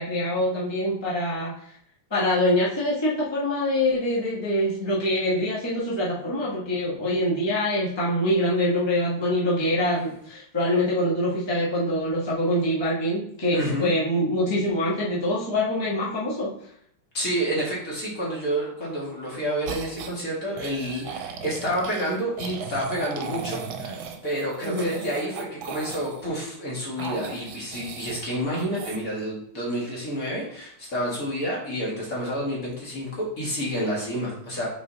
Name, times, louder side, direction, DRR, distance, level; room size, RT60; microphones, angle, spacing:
voice 1, 0.0-1.5 2.1-16.5 24.6-24.9, left 1 dB, 15° left, -7 dB, 1.0 m, -24 dB
voice 2, 13.5-13.9 17.1-34.7, equal, 40° left, -5 dB, 2.2 m, -29 dB
sound 1, 19.7-20.2 20.6-26.3 27.0-28.3 28.5-29.0, right 6 dB, 75° right, 1.4 m, -37 dB
5.2 x 4.6 x 3.9 m, 0.68 s
omnidirectional pair, 2.3 m